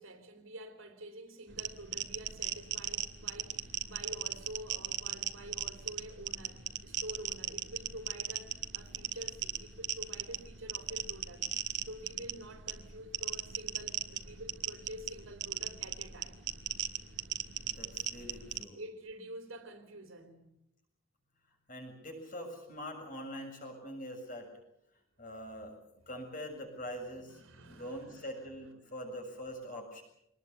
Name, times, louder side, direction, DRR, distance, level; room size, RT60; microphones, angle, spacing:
voice 1, 0.0-16.5 18.8-20.5 26.0-26.1 27.1-28.4, right 1 dB, 80° right, 3.3 m, -48 dB
sound 1, 1.5-18.6, right 10 dB, 60° right, 1.8 m, -38 dB
voice 2, 17.7-18.8 21.7-24.5 25.2-25.8 26.1-30.0, equal, 40° left, 7.3 m, -44 dB
24.5 x 20.0 x 8.3 m
head